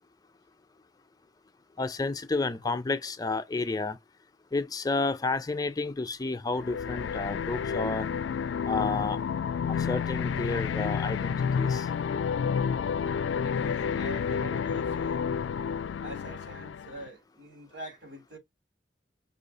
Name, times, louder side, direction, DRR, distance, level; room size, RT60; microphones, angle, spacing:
voice 1, 1.8-4.0 4.5-8.1 8.7-9.2 9.7-11.9, left 3 dB, 20° left, 0.4 m, -31 dB
sound 1, 6.6-17.1, left 6 dB, 90° left, 0.3 m, -30 dB
voice 2, 13.4-15.3 16.0-18.4, right 1 dB, 80° right, 2.3 m, -44 dB
5.4 x 2.4 x 3.9 m
head